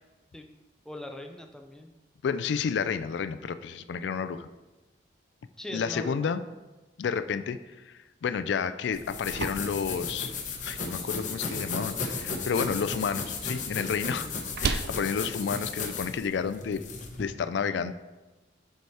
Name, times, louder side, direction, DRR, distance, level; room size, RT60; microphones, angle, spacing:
voice 1, 0.9-1.9 5.6-6.3 14.0-14.4, left 1 dB, 5° left, 4 dB, 0.4 m, -40 dB
voice 2, 2.2-4.5 5.7-6.4 7.0-10.3 10.6-14.3 14.6-16.8 17.2-17.9, left 6 dB, 75° left, 12 dB, 0.3 m, -31 dB
sound 1, 8.8-16.8, right 5 dB, 60° right, 0.4 m, -39 dB
sound 2, 8.9-17.2, left 4 dB, 40° left, 0.8 m, -35 dB
6.9 x 4.7 x 4.7 m, 1.1 s
head